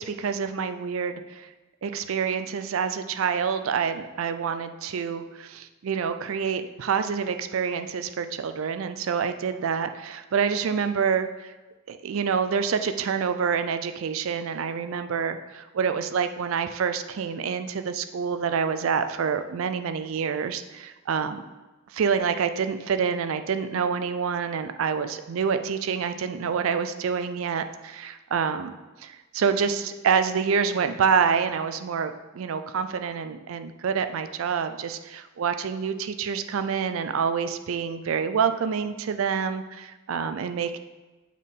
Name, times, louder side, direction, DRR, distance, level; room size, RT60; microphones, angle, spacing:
voice 1, 0.0-1.5 1.8-11.3 11.9-21.4 21.9-40.8, right 6 dB, 70° right, 10 dB, 0.4 m, -27 dB
7.3 x 4.2 x 3.6 m, 1.2 s
head